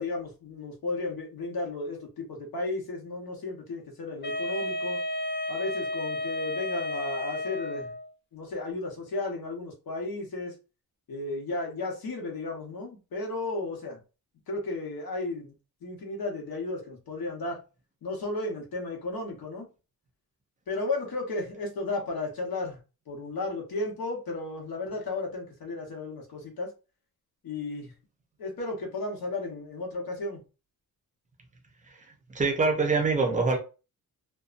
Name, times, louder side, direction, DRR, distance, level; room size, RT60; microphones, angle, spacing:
voice 1, 0.0-5.0 5.5-7.9 8.3-10.5 11.1-14.0 14.5-15.5 15.8-17.6 18.0-19.7 20.7-22.8 23.1-26.7 27.4-27.9 28.4-30.4, left 2 dB, 65° left, 1.0 m, -34 dB
Wind instrument woodwind instrument, 4.2-8.1, left 1 dB, 30° left, 0.5 m, -32 dB
voice 2, 32.3-33.6, right 3 dB, 20° right, 0.5 m, -24 dB
2.6 x 2.2 x 2.4 m
wide cardioid pair, 155°, 38 cm